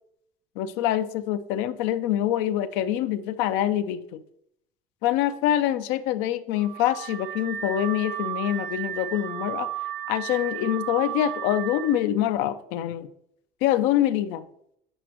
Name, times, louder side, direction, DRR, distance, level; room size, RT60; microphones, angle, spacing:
voice 1, 0.6-4.2 5.0-9.7 10.1-13.1 13.6-14.4, left 12 dB, 80° left, 0.5 m, -25 dB
Car / Alarm, 6.6-12.0, right 12 dB, 65° right, 0.7 m, -34 dB
8.1 x 5.0 x 3.0 m
cardioid pair, 115°, 18 cm